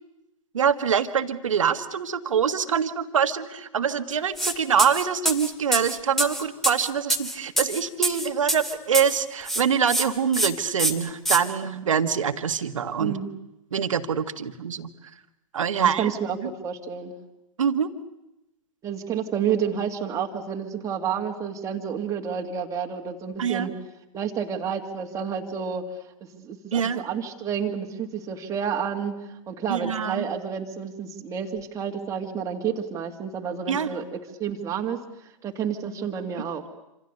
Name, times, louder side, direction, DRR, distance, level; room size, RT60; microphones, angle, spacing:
voice 1, 0.5-13.2 13.7-14.9 15.5-16.1 17.6-17.9 23.4-23.7 26.7-27.0 29.7-30.3 33.7-33.9, right 7 dB, 65° right, 9 dB, 1.7 m, -24 dB
sound 1, 4.4-4.5 4.8-9.2 9.5-10.0 10.3-10.5 10.8-11.4, right 1 dB, ahead, 2.3 m, -25 dB
voice 2, 13.0-13.3 15.8-17.2 18.8-23.7 24.1-26.0 26.3-36.6, right 7 dB, 20° right, 0 dB, 2.3 m, -30 dB
27.5 x 26.5 x 6.8 m, 0.92 s
figure-of-eight pair, 110°, 18 cm